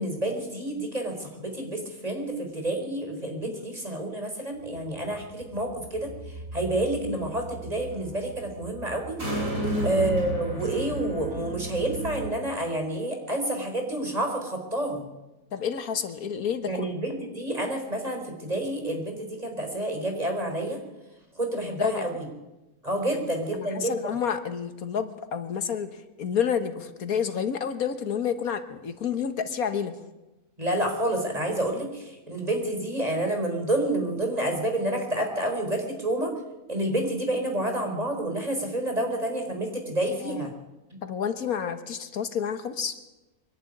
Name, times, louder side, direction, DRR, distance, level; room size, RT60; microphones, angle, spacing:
voice 1, 0.0-15.0 16.7-20.8 21.4-22.3 22.8-23.9 30.6-36.3 36.7-40.5 40.9-41.0, right 1 dB, 25° right, 3 dB, 4.5 m, -29 dB
sound 1, 4.6-12.3, right 2 dB, 65° right, 7.0 m, -34 dB
voice 2, 15.5-16.9 21.8-22.2 23.1-29.9 40.2-40.4 41.0-43.0, left 7 dB, 80° left, 10 dB, 1.8 m, -30 dB
24.0 x 11.5 x 9.9 m, 1.0 s
omnidirectional pair, 1.5 m